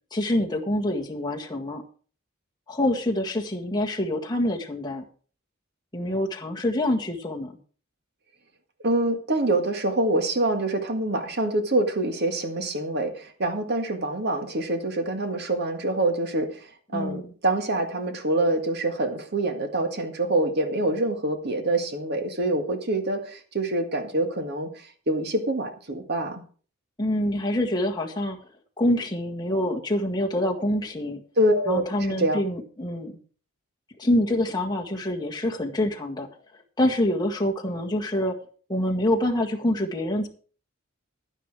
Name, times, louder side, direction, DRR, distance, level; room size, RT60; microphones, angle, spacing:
voice 1, 0.1-1.8 2.7-5.0 5.9-7.6 16.9-17.3 27.0-28.4 28.8-31.2 31.7-33.1 34.0-36.3 36.8-38.4 38.7-40.3, left 1 dB, 20° left, 0 dB, 1.8 m, -26 dB
voice 2, 8.8-26.4 31.4-31.8 32.2-32.4, right 1 dB, 55° right, 6 dB, 1.8 m, -25 dB
11.0 x 9.9 x 4.9 m, 0.41 s
head